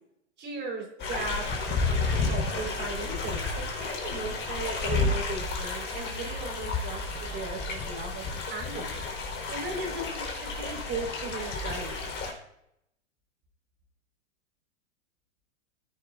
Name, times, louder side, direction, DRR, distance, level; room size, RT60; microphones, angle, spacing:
voice 1, 0.4-8.2 8.5-8.9 9.5-11.9, right 3 dB, 30° right, 0 dB, 4.1 m, -37 dB
sound 1, 1.0-12.3, left 3 dB, 30° left, 4.0 m, -31 dB
19.0 x 11.0 x 2.5 m, 0.78 s
hypercardioid pair, 115°, 36 cm